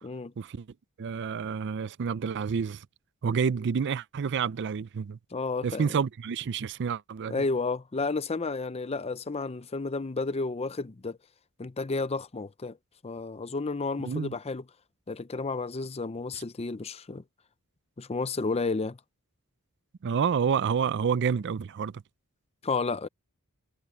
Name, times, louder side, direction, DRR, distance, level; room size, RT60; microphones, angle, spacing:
voice 1, 0.0-0.3 5.3-6.0 7.3-11.2 11.6-12.8 13.0-14.6 15.1-17.2 18.0-19.0 22.6-23.1, left 3 dB, 30° left, 0.6 m, -31 dB
voice 2, 1.0-2.9 3.2-5.2 5.6-7.4 14.0-14.3 20.0-22.0, right 6 dB, 55° right, 0.4 m, -29 dB
head